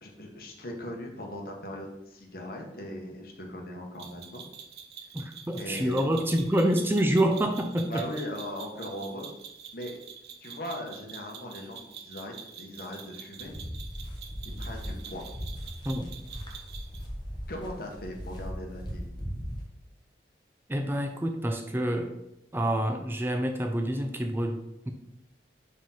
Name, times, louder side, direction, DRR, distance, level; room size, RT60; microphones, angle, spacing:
voice 1, 0.0-4.4 5.5-6.0 7.8-9.3 9.7-10.0 10.4-13.5 14.6-15.2 17.5-19.1, equal, 55° left, 1 dB, 1.3 m, -39 dB
sound 1, 4.0-17.1, right 7 dB, 65° right, 0.7 m, -46 dB
voice 2, 5.1-8.0 15.9-16.1 20.7-22.1 22.5-24.9, right 1 dB, 15° right, 5 dB, 0.4 m, -27 dB
sound 2, 13.4-19.7, equal, 25° left, 1.2 m, -38 dB
5.1 x 3.7 x 5.7 m, 0.87 s
head